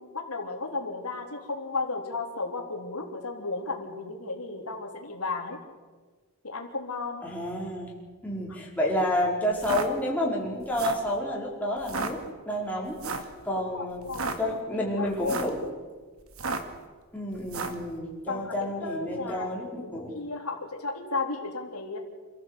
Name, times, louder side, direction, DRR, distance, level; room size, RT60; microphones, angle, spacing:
voice 1, 0.0-5.6 6.4-7.2 13.7-15.4 18.3-22.0, left 3 dB, 85° left, 1 dB, 3.4 m, -34 dB
voice 2, 7.2-7.9 8.2-13.0 13.4-15.6 17.1-20.2, left 1 dB, 5° left, -4 dB, 4.9 m, -30 dB
sound 1, 9.5-9.9 10.6-11.1 11.8-12.1 13.0-13.3 14.0-14.4 15.1-15.6 16.3-16.8 17.5-17.8, right 4 dB, 65° right, 2.1 m, -32 dB
27.5 x 15.0 x 8.3 m, 1.4 s
head